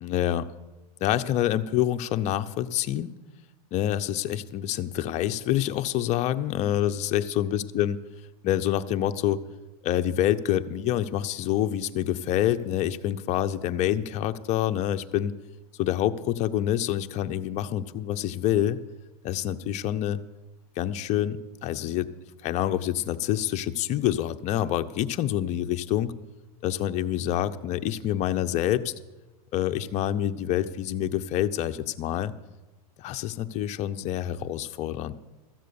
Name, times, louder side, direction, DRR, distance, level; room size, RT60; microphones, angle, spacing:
voice 1, 0.0-0.5 1.0-3.1 3.7-8.0 8.4-9.4 9.8-15.3 15.8-18.8 19.2-20.2 20.8-22.1 22.4-26.1 26.6-28.9 29.5-32.3 33.0-35.1, left 12 dB, 35° left, 10 dB, 0.6 m, -27 dB
14.0 x 7.5 x 7.0 m, 1.1 s
supercardioid pair, 130°, 20 cm